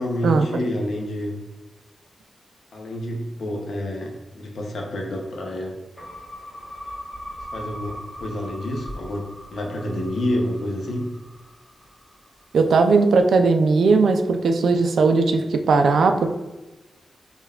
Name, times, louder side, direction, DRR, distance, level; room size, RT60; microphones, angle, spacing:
voice 1, 0.0-1.4 2.7-5.8 7.5-11.1, left 1 dB, 65° left, 1 dB, 0.7 m, -28 dB
sound 1, 6.0-12.3, equal, 20° left, 1.4 m, -39 dB
voice 2, 12.5-16.3, right 4 dB, 85° right, 6 dB, 0.3 m, -18 dB
5.4 x 2.2 x 2.3 m, 1.1 s
wide cardioid pair, 165°, 0 cm